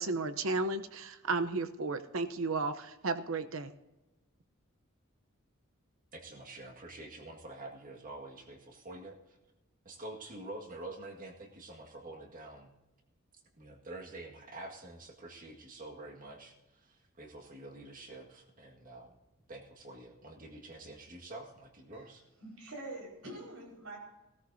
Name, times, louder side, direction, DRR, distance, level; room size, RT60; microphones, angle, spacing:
voice 1, 0.0-3.7, right 3 dB, 70° right, 10 dB, 0.8 m, -33 dB
voice 2, 6.1-9.4 9.9-12.7 13.6-19.2 19.5-22.2, right 2 dB, 40° right, 2 dB, 1.9 m, -47 dB
voice 3, 22.4-24.0, right 2 dB, 90° right, -1 dB, 5.0 m, -45 dB
16.5 x 13.5 x 2.7 m, 1.1 s
head